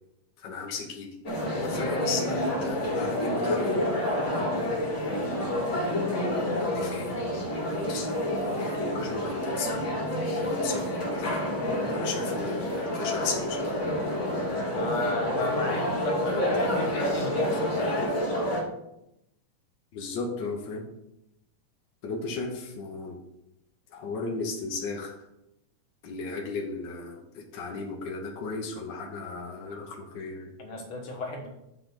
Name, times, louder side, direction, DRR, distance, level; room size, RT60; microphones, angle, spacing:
voice 1, 0.4-1.1 1.6-3.8 6.6-7.1 7.7-8.1 8.6-9.8 10.3-11.4 11.9-13.8 16.3-17.0 19.9-20.8 22.0-23.2 23.9-25.2 26.0-30.5, left 4 dB, 75° left, 0 dB, 1.0 m, -35 dB
sound 1, 1.2-18.6, left 1 dB, 25° left, 2.0 m, -28 dB
voice 2, 14.7-18.0 30.6-31.5, left 1 dB, 50° left, 0 dB, 1.9 m, -33 dB
7.6 x 4.0 x 6.8 m, 0.85 s
omnidirectional pair, 3.7 m